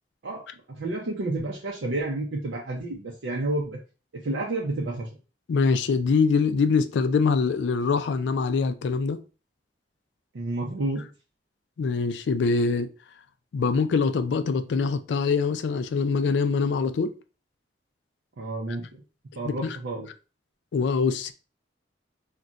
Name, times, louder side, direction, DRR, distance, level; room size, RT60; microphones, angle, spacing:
voice 1, 0.7-3.8 4.2-5.1 10.3-11.1 18.4-19.0 19.4-20.1, right 2 dB, 85° right, 0.5 m, -30 dB
voice 2, 5.5-9.2 11.8-12.9 13.5-17.1 19.6-19.8 20.7-21.3, left 4 dB, 70° left, 0.3 m, -24 dB
2.4 x 2.2 x 3.8 m
head